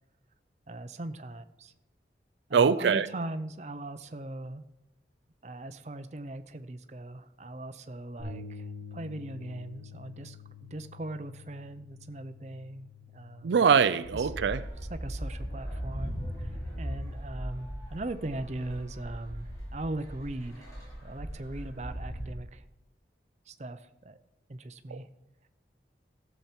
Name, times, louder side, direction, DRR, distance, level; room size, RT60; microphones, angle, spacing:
voice 1, 0.7-1.7 2.5-4.6 5.4-10.4 10.7-13.6 14.1-14.3 14.9-20.7 21.0-22.6 23.5-24.2 24.5-25.1, right 2 dB, 40° right, 0.6 m, -39 dB
voice 2, 2.5-3.1 13.4-14.6 24.9-25.0, right 6 dB, 90° right, 0.4 m, -23 dB
Bass guitar, 8.2-14.4, left 4 dB, 55° left, 4.6 m, -47 dB
sound 1, 14.0-22.3, equal, 20° left, 4.9 m, -38 dB
15.0 x 7.1 x 4.5 m
head